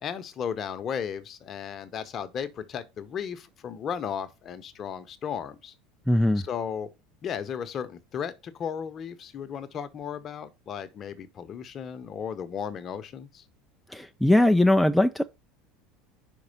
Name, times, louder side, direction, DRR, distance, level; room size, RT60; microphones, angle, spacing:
voice 1, 0.0-5.7 6.4-6.9 7.2-13.4, left 7 dB, 40° left, 0.9 m, -35 dB
voice 2, 6.1-6.4 13.9-15.2, left 1 dB, ahead, 0.4 m, -20 dB
5.4 x 4.7 x 5.2 m
hypercardioid pair, 70°, 0 cm